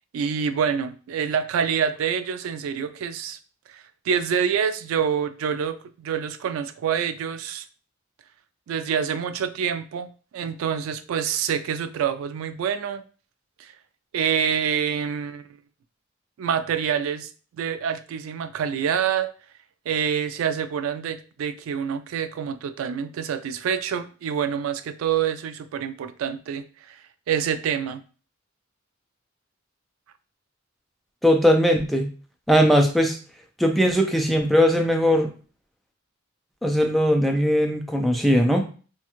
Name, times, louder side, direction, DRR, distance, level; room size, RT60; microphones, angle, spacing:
voice 1, 0.1-3.4 3.7-7.6 8.7-13.0 13.6-13.7 14.1-15.5 16.4-19.3 19.9-27.0 27.3-28.0, right 7 dB, 85° right, 10 dB, 0.3 m, -26 dB
voice 2, 31.2-32.1 32.5-33.2 33.6-35.3 36.6-38.7, equal, ahead, 3 dB, 0.3 m, -19 dB
2.4 x 2.3 x 2.9 m, 0.38 s
head